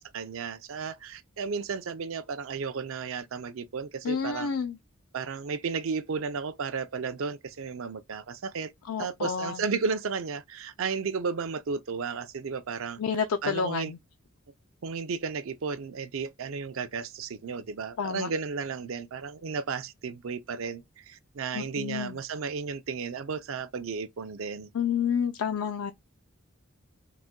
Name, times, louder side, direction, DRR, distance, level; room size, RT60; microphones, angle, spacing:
voice 1, 0.0-4.5 5.1-8.7 9.0-13.0 13.4-13.9 14.8-24.7, right 5 dB, 70° right, 0.5 m, -33 dB
voice 2, 4.0-4.8 8.9-9.6 13.0-14.0 18.0-18.3 21.5-22.2 24.7-25.9, left 6 dB, 85° left, 0.4 m, -29 dB
3.9 x 2.2 x 2.2 m
head